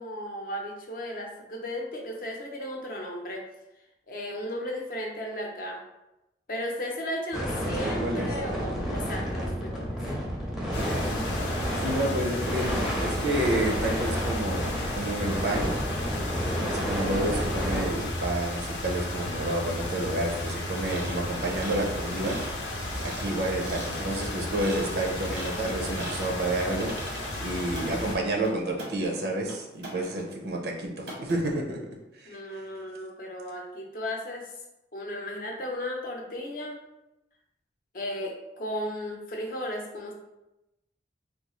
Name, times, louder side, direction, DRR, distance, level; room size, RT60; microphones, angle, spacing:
voice 1, 0.0-3.4 4.1-5.8 6.5-10.0 32.2-34.5 34.9-36.8 37.9-40.1, left 1 dB, 50° left, 0 dB, 0.6 m, -35 dB
sound 1, 7.3-17.9, equal, ahead, 0.5 m, -31 dB
voice 2, 7.6-8.3 10.8-11.2 11.8-15.7 16.6-22.4 23.0-30.9 31.2-31.8 32.2-32.6, right 1 dB, 70° right, 1 dB, 0.6 m, -30 dB
sound 2, 10.7-28.2, left 1 dB, 90° left, 0.6 m, -33 dB
sound 3, 20.8-30.3 30.6-30.7 31.1-31.6, right 1 dB, 90° right, 1.0 m, -41 dB
3.5 x 2.3 x 3.0 m, 0.94 s
head